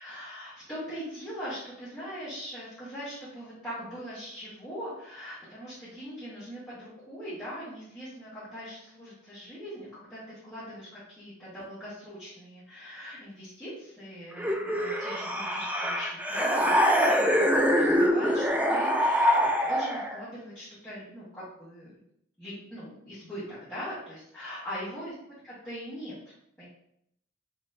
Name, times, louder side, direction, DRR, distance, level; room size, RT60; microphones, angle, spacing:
voice 1, 0.0-21.9 22.4-25.1 25.4-26.7, equal, 10° left, -13 dB, 1.3 m, -41 dB
sound 1, 14.4-20.2, equal, 10° right, 0.3 m, -24 dB
4.1 x 3.0 x 2.6 m, 0.75 s
head